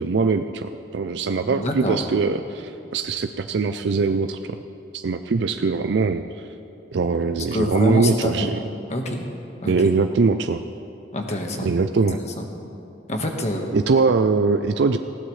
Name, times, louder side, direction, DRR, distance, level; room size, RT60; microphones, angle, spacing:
voice 1, 0.0-4.6 4.9-6.5 6.9-8.6 9.7-10.6 11.6-12.2 13.7-15.0, right 4 dB, 70° right, 8 dB, 0.4 m, -22 dB
voice 2, 1.5-2.0 7.5-8.5 8.9-9.3 9.6-9.7 11.1-11.7 12.4-12.5 13.1-13.7, left 1 dB, 40° left, 2 dB, 1.4 m, -26 dB
19.5 x 16.0 x 3.2 m, 2.8 s
head